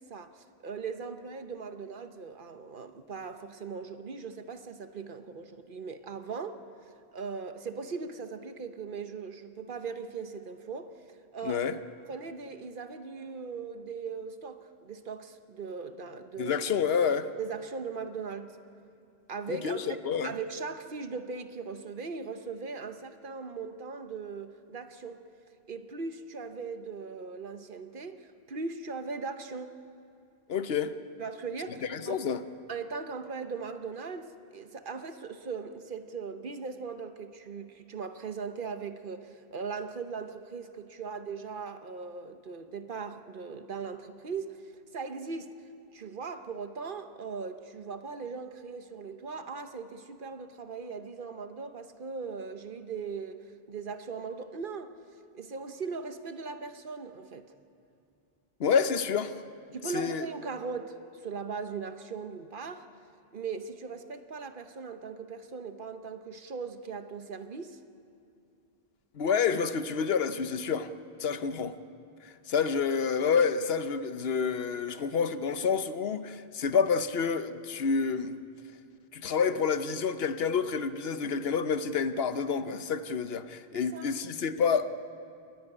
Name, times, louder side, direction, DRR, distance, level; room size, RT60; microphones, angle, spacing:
voice 1, 0.0-6.6 7.1-11.0 11.3-11.8 12.1-16.6 17.0-17.1 17.4-18.6 19.3-20.0 20.2-25.2 25.7-29.8 31.2-32.3 32.7-45.5 45.9-54.9 55.3-57.5 59.7-62.9 63.3-67.8 83.7-84.1, right 5 dB, 55° right, 9 dB, 1.1 m, -39 dB
voice 2, 11.4-11.8 16.4-17.3 19.5-20.3 30.5-30.9 31.9-32.4 58.6-59.3 59.9-60.3 69.1-70.9 71.2-71.7 72.2-78.3 79.1-84.9, left 6 dB, 70° left, 11 dB, 1.0 m, -28 dB
28.5 x 10.5 x 9.7 m, 2.5 s
omnidirectional pair, 1.1 m